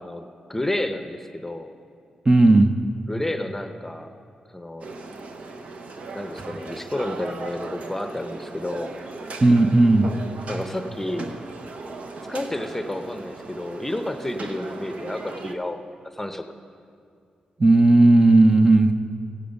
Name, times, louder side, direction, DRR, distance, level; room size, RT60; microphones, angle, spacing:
voice 1, 0.0-1.7 3.1-4.1 4.5-4.9 6.1-8.9 10.5-11.3 12.3-15.8 16.1-16.4, left 1 dB, 10° left, 7 dB, 0.8 m, -30 dB
voice 2, 2.3-2.7 9.4-10.1 17.6-18.9, right 2 dB, 30° right, 7 dB, 0.7 m, -15 dB
sound 1, 4.8-15.5, right 3 dB, 65° right, 0.9 m, -37 dB
15.5 x 8.5 x 5.3 m, 2.4 s
cardioid pair, 70°, 2 cm